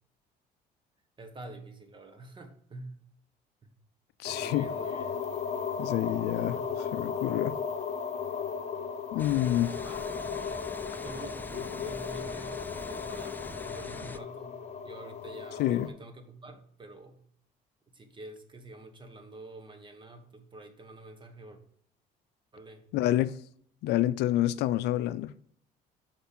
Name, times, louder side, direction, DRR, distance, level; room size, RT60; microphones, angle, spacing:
voice 1, 1.2-3.0 3.6-3.7 4.3-5.3 6.5-6.9 9.7-10.1 11.0-14.6 14.8-17.2 17.9-21.6 22.5-22.9, right 2 dB, 30° right, 1.5 m, -47 dB
voice 2, 4.2-4.7 5.8-6.6 6.9-7.6 9.1-9.7 15.6-15.9 22.9-23.4 23.8-25.3, left 14 dB, 80° left, 0.4 m, -27 dB
sound 1, 4.2-15.9, left 6 dB, 45° left, 1.2 m, -36 dB
sound 2, 9.2-14.2, left 3 dB, 10° left, 0.5 m, -43 dB
7.0 x 5.9 x 5.4 m
cardioid pair, 110°, 17 cm